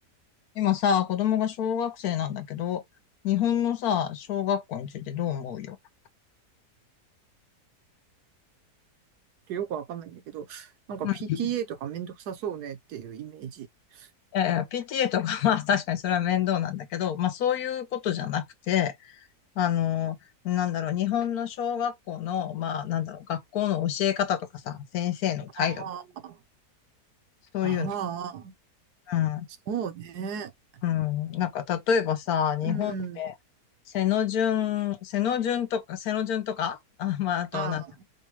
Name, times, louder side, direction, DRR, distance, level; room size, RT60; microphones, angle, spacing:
voice 1, 0.6-2.8 3.2-5.8 11.0-11.4 14.3-19.1 19.6-20.2 20.4-25.8 27.5-27.9 29.1-29.5 30.8-33.3 33.9-37.8, left 9 dB, 70° left, 1.1 m, -27 dB
voice 2, 9.5-14.1 25.6-26.4 27.6-28.5 29.7-30.5 32.6-33.2 37.5-38.0, right 8 dB, 75° right, 1.4 m, -35 dB
5.2 x 2.3 x 2.9 m
omnidirectional pair, 1.8 m